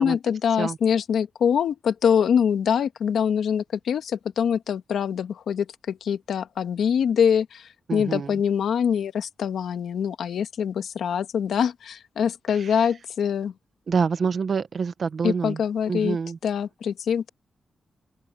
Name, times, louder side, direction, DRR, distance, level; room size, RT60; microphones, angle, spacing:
voice 1, 0.0-13.5 15.2-16.2 16.4-17.3, left 7 dB, 85° left, 1.5 m, -24 dB
voice 2, 7.9-8.4 12.6-12.7 13.9-15.6 15.9-16.4, right 5 dB, 55° right, 1.1 m, -26 dB
open air
wide cardioid pair, 115°, 0 cm